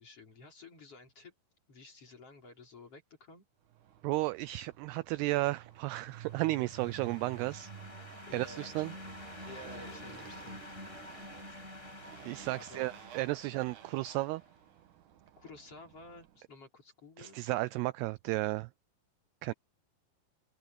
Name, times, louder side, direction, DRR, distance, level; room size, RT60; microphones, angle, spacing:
voice 1, 0.0-1.3 1.7-3.4 8.3-8.9 9.4-10.6 12.5-12.9 15.4-17.4, left 2 dB, 35° left, 4.6 m, -52 dB
Motorcycle, 3.7-16.4, right 10 dB, 65° right, 2.2 m, -52 dB
voice 2, 4.0-7.7 8.3-8.9 12.3-14.4 17.2-18.7 19.4-19.5, right 19 dB, 85° right, 2.3 m, -33 dB
sound 1, 5.8-14.4, left 1 dB, 15° left, 6.2 m, -49 dB
sound 2, 6.7-14.5, left 4 dB, 50° left, 7.0 m, -62 dB
open air
omnidirectional pair, 5.1 m